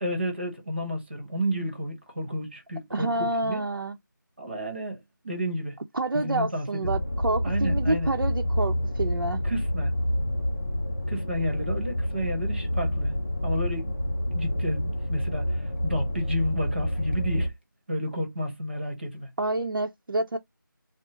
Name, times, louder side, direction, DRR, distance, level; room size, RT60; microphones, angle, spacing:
voice 1, 0.0-3.6 4.4-5.8 6.1-6.9 7.4-8.1 9.4-9.9 11.1-13.1 13.4-14.0 14.3-15.5 15.8-17.5 17.9-19.3, equal, 30° right, 1.1 m, -31 dB
voice 2, 2.9-4.0 5.9-9.4 19.4-20.4, right 2 dB, 80° right, 0.6 m, -28 dB
sound 1, 6.8-17.5, left 1 dB, 35° left, 0.5 m, -28 dB
3.8 x 2.0 x 3.7 m
figure-of-eight pair, 175°, 11 cm